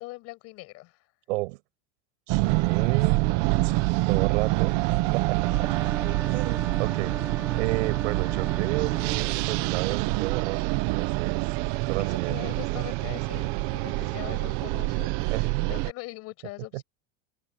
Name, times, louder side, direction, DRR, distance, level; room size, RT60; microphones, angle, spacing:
voice 1, 0.0-1.1 12.0-16.8, left 21 dB, 45° left, 5.9 m, -42 dB
voice 2, 1.3-1.6 2.3-3.3 3.6-4.8 5.1-5.7 6.3-7.1 7.6-12.9 15.3-15.7, right 21 dB, 85° right, 7.1 m, -32 dB
sound 1, 2.3-15.9, right 22 dB, 50° right, 0.8 m, -26 dB
sound 2, 5.4-9.3, right 3 dB, 5° right, 1.0 m, -39 dB
cardioid pair, 175°, 35 cm